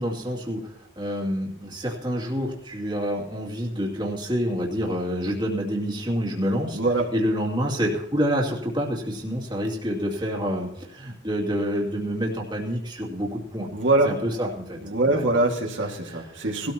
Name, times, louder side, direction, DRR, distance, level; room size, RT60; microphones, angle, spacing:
voice 1, 0.0-6.8 7.1-13.7 14.0-15.2 16.1-16.5, equal, 25° right, -2 dB, 2.5 m, -28 dB
voice 2, 6.7-7.1 13.7-14.1 14.8-16.7, right 2 dB, 65° right, 0 dB, 2.1 m, -23 dB
19.0 x 13.5 x 2.9 m, 0.81 s
head